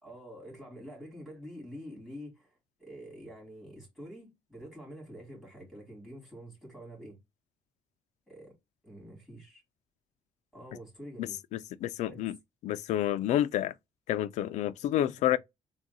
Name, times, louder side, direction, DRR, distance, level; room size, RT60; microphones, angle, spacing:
voice 1, 0.0-2.5 2.8-7.2 8.3-8.5 8.8-9.6 10.5-11.4 12.1-12.2 14.9-15.4, equal, ahead, 2.4 m, -47 dB
voice 2, 11.2-12.4 12.6-13.7 14.1-15.4, left 12 dB, 75° left, 0.4 m, -29 dB
3.5 x 2.5 x 3.9 m
cardioid pair, 155°, 12 cm